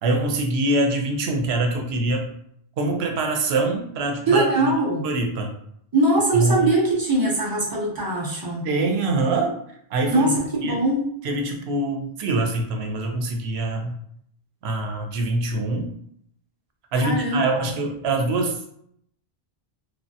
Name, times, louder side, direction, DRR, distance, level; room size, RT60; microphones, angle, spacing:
voice 1, 0.0-2.3 2.8-4.7 5.0-5.5 6.3-6.7 8.6-9.6 9.9-10.8 11.2-14.0 14.6-15.9 16.9-18.7, right 2 dB, 85° right, 3 dB, 0.8 m, -24 dB
voice 2, 4.3-5.0 5.9-8.7 10.1-11.0 17.0-17.7, right 2 dB, 30° right, -3 dB, 0.5 m, -21 dB
3.1 x 2.1 x 2.6 m, 0.70 s
omnidirectional pair, 1.0 m